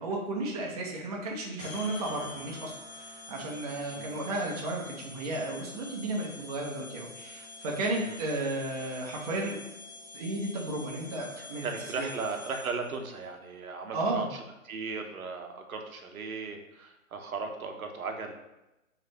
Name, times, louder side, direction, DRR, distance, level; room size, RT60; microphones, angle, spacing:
voice 1, 0.0-9.6 10.1-11.7 12.0-12.1 13.9-14.3, right 2 dB, 30° right, -1 dB, 0.7 m, -33 dB
sound 1, 1.6-13.0, left 3 dB, 50° left, 0.9 m, -46 dB
voice 2, 11.4-18.3, right 4 dB, 85° right, 4 dB, 0.8 m, -37 dB
3.3 x 3.3 x 3.9 m, 0.96 s
hypercardioid pair, 150°, 41 cm